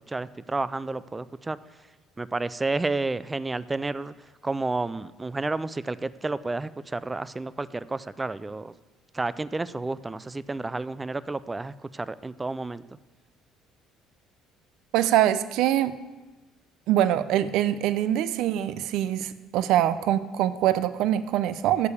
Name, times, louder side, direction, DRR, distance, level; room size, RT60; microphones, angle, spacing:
voice 1, 0.0-1.6 2.2-4.1 4.4-8.7 9.1-12.8, right 3 dB, 15° right, 17 dB, 0.4 m, -31 dB
voice 2, 14.9-16.0 16.9-21.9, right 12 dB, 75° right, 14 dB, 0.5 m, -24 dB
9.8 x 6.8 x 6.9 m, 1.2 s
cardioid pair, 115°, 0 cm